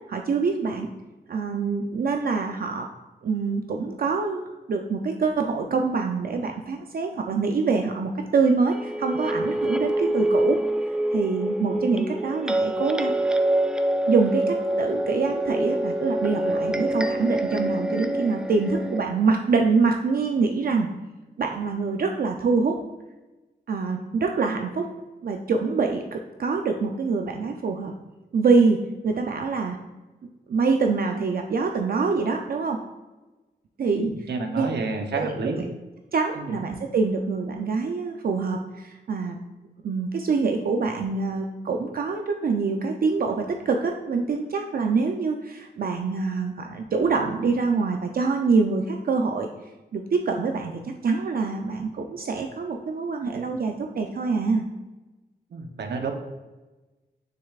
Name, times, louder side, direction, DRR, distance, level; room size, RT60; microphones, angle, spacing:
voice 1, 0.1-0.9 1.3-2.9 3.2-10.6 11.1-13.2 14.1-20.9 21.4-22.8 23.7-24.9 25.2-27.9 28.3-29.8 30.5-32.8 33.8-34.1 34.5-34.7 35.2-35.3 35.6-35.7 36.1-39.4 39.8-49.5 49.9-54.6, right 4 dB, 60° right, 3 dB, 0.5 m, -25 dB
sound 1, 8.7-19.0, right 1 dB, 5° right, 0.4 m, -26 dB
voice 2, 34.0-35.6 36.3-36.5 55.5-56.1, right 3 dB, 80° right, 4 dB, 0.8 m, -30 dB
6.7 x 6.6 x 2.4 m, 1.2 s
wide cardioid pair, 95°, 17 cm